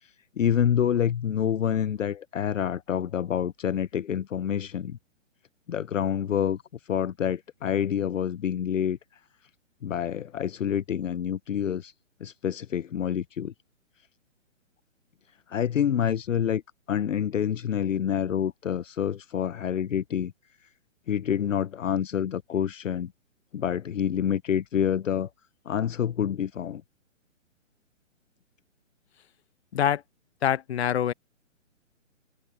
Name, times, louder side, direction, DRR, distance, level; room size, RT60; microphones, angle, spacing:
voice 1, 0.0-5.0 5.7-6.6 6.9-9.0 9.8-11.9 12.2-13.5 15.5-16.6 16.9-20.3 21.1-23.1 23.5-25.3 25.7-26.8, left 9 dB, 75° left, 0.7 m, -27 dB
voice 2, 30.4-31.1, left 9 dB, 55° left, 1.1 m, -24 dB
figure-of-eight pair, 135°, 39 cm